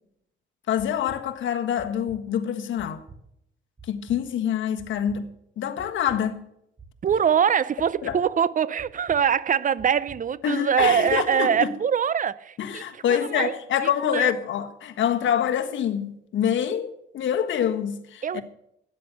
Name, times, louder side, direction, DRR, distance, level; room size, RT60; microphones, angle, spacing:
voice 1, 0.7-3.0 3.9-5.3 5.6-6.4 8.0-8.2 10.4-11.7 12.6-18.4, left 9 dB, 70° left, 1.4 m, -26 dB
sound 1, 0.8-1.2 1.8-2.2 2.8-3.2 3.8-4.2 4.8-5.2 5.8-6.2 6.8-7.2 7.8-8.2 8.8-9.2 9.8-10.2 10.8-11.2, right 4 dB, 20° right, 1.6 m, -46 dB
voice 2, 7.0-13.5 13.8-14.3 18.2-18.4, right 8 dB, 40° right, 0.6 m, -23 dB
13.0 x 9.8 x 6.7 m
cardioid pair, 90°, 20 cm